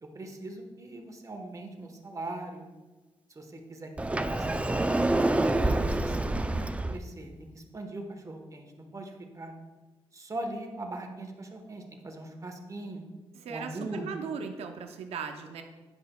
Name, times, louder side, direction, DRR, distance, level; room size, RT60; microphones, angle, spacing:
voice 1, 0.0-2.6 3.3-3.9 4.3-4.8 5.3-9.5 10.1-13.0 13.5-14.3, right 2 dB, 30° right, 4 dB, 1.0 m, -40 dB
Sliding door, 4.0-7.0, right 2 dB, 10° right, 0.3 m, -27 dB
voice 2, 13.4-15.6, right 6 dB, 90° right, 5 dB, 0.6 m, -38 dB
9.8 x 5.6 x 2.2 m, 1.2 s
cardioid pair, 70°, 10 cm